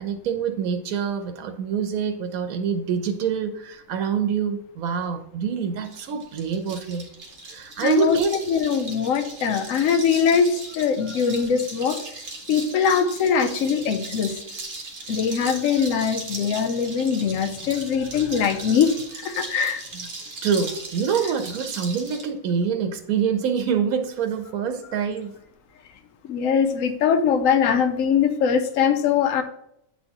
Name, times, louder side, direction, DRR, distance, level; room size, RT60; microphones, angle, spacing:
voice 1, 0.0-7.0 7.5-8.4 19.9-20.1 20.4-25.3, right 6 dB, 90° right, 7 dB, 1.1 m, -25 dB
sound 1, 5.8-22.3, right 3 dB, 55° right, 1.3 m, -38 dB
voice 2, 7.8-8.2 8.5-12.0 12.5-14.4 15.1-19.8 26.2-29.4, left 7 dB, 75° left, 9 dB, 1.0 m, -22 dB
8.5 x 4.1 x 2.9 m, 0.75 s
omnidirectional pair, 1.5 m